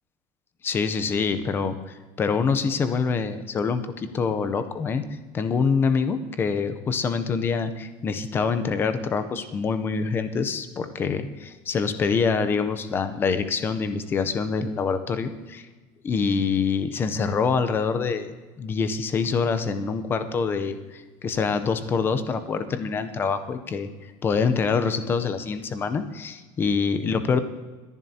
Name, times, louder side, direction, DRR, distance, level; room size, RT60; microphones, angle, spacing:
voice 1, 0.6-5.0 5.3-15.7 16.0-27.4, left 5 dB, 20° left, 10 dB, 0.6 m, -25 dB
21.0 x 11.0 x 2.8 m, 1.3 s
cardioid pair, 180°, 12 cm